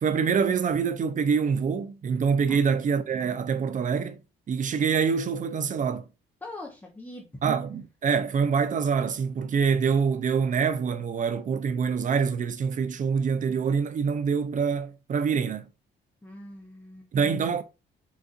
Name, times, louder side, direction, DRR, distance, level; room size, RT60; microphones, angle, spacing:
voice 1, 0.0-4.2 4.5-6.0 7.4-15.7 17.1-17.6, right 6 dB, 40° right, 0.5 m, -25 dB
voice 2, 6.4-7.3 16.2-17.1, left 2 dB, 10° left, 0.7 m, -42 dB
4.0 x 2.4 x 2.4 m
cardioid pair, 90°, 20 cm